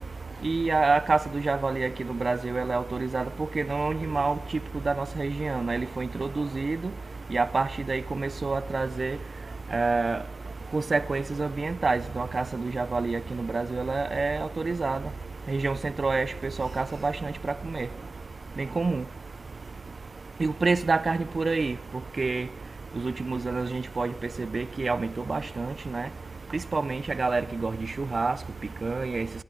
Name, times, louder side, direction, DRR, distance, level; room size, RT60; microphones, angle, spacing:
voice 1, 0.4-3.3 3.6-4.4 4.9-6.8 7.3-9.2 9.7-10.2 10.7-15.0 15.5-16.3 16.6-17.3 17.7-17.9 18.8-19.0 20.4-21.7 22.2-22.5 23.0-24.1 24.4-26.1 26.7-27.7 28.0-28.4 28.8-29.3, right 3 dB, 40° right, 0.5 m, -27 dB
Human voice, 3.5-4.7 5.2-6.2, left 2 dB, 45° left, 4.3 m, -52 dB
26.5 x 13.0 x 3.9 m
wide cardioid pair, 95°, 0 cm